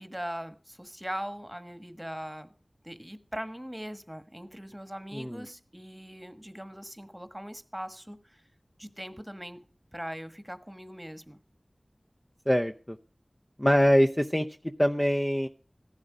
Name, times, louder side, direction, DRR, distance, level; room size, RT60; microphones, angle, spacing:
voice 1, 0.0-2.5 2.8-8.4 8.8-9.6 9.9-11.4, equal, 10° right, 1.4 m, -40 dB
voice 2, 5.1-5.4 12.5-13.0 13.6-14.5 14.8-15.5, equal, 10° left, 0.7 m, -24 dB
15.5 x 11.0 x 5.0 m
wide cardioid pair, 40°, 0 cm